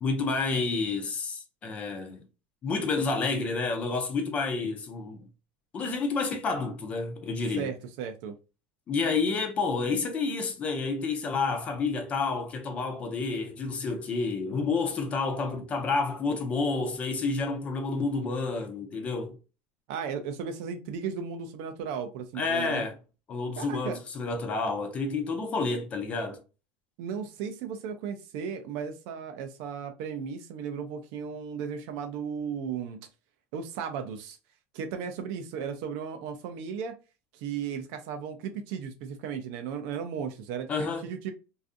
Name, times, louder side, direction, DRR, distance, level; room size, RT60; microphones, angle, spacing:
voice 1, 0.0-2.3 2.6-5.3 5.7-7.7 8.9-19.4 22.4-22.9 23.3-26.4 40.7-41.0, left 4 dB, 20° left, 0.4 m, -29 dB
voice 2, 7.6-8.3 19.9-22.8 23.6-24.0 27.0-33.0 33.5-34.4 34.7-36.9 37.3-41.3, right 7 dB, 50° right, 0.4 m, -35 dB
2.5 x 2.4 x 2.5 m
supercardioid pair, 175°, 6 cm